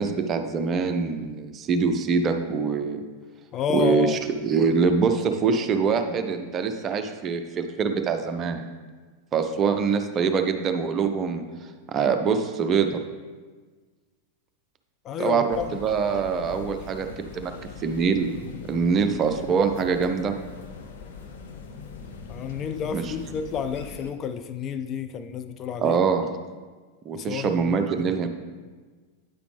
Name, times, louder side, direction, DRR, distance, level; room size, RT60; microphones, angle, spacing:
voice 1, 0.0-3.0 3.7-8.6 9.3-11.4 11.9-13.0 15.2-17.1 17.3-17.5 17.8-18.3 18.7-20.3 22.9-23.0 25.8-26.3 27.1-28.3, right 5 dB, 30° right, 6 dB, 0.5 m, -24 dB
voice 2, 3.5-4.2 15.0-15.8 22.3-26.0 27.1-27.8, left 7 dB, 30° left, 9 dB, 0.3 m, -30 dB
sound 1, 15.5-24.1, left 5 dB, 60° left, 0.7 m, -41 dB
9.3 x 5.0 x 3.3 m, 1.4 s
figure-of-eight pair, 90°, 0 cm